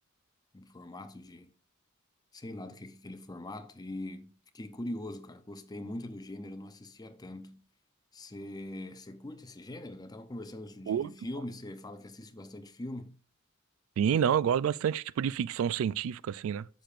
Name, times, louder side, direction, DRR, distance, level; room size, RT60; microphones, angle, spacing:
voice 1, 0.5-1.5 2.3-7.6 8.1-13.2, left 1 dB, 20° left, 0.6 m, -42 dB
voice 2, 14.0-16.7, right 8 dB, 90° right, 0.3 m, -28 dB
10.0 x 6.6 x 2.5 m
head